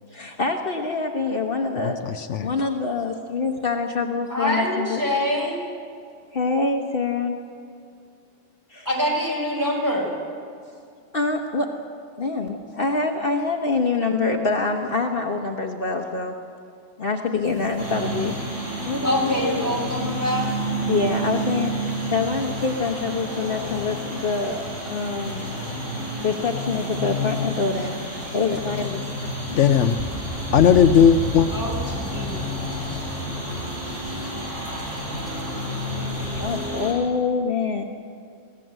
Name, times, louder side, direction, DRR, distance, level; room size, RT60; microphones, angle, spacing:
voice 1, 0.1-2.0 2.4-5.0 6.3-7.4 8.7-8.9 11.1-11.7 12.2-16.3 17.0-18.3 18.8-19.4 20.9-25.6 26.2-29.0 36.0-37.8, left 4 dB, 50° left, 2 dB, 1.4 m, -25 dB
voice 2, 1.8-2.5 29.6-29.9 30.5-31.5, left 8 dB, 75° left, 9 dB, 1.0 m, -17 dB
voice 3, 4.3-5.6 8.8-10.1 19.0-20.5 31.5-32.4, equal, 15° right, -2 dB, 4.9 m, -25 dB
sound 1, 17.4-36.7, equal, 55° right, 4.3 m, -38 dB
sound 2, 17.8-36.9, equal, 85° right, 7.2 m, -30 dB
23.0 x 17.0 x 7.7 m, 2.3 s
omnidirectional pair, 1.3 m